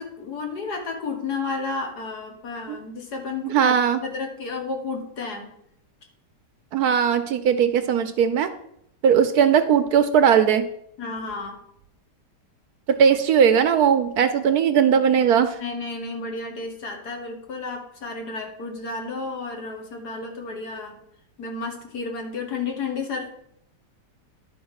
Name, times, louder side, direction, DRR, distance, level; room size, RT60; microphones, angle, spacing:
voice 1, 0.0-5.5 11.0-11.6 15.6-21.0 21.4-23.4, left 4 dB, 65° left, 3 dB, 2.0 m, -32 dB
voice 2, 3.4-4.0 6.7-8.5 9.0-10.6 12.9-15.6, right 7 dB, 70° right, 9 dB, 1.1 m, -19 dB
11.0 x 4.3 x 6.4 m, 0.73 s
omnidirectional pair, 1.9 m